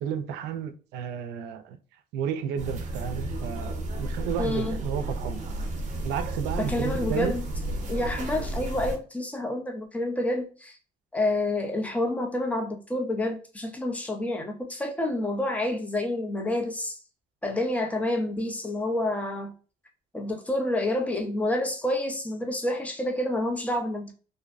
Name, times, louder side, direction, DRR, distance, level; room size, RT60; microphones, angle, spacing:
voice 1, 0.0-1.8 2.1-5.4 6.0-7.3, right 8 dB, 90° right, 0.4 m, -32 dB
sound 1, 2.6-9.0, right 1 dB, 45° right, 0.7 m, -32 dB
voice 2, 4.4-4.8 6.6-7.4 7.9-10.8 11.1-17.0 17.4-19.5 20.1-24.1, left 1 dB, 10° left, 0.5 m, -28 dB
2.5 x 2.1 x 2.4 m
cardioid pair, 110°, 17 cm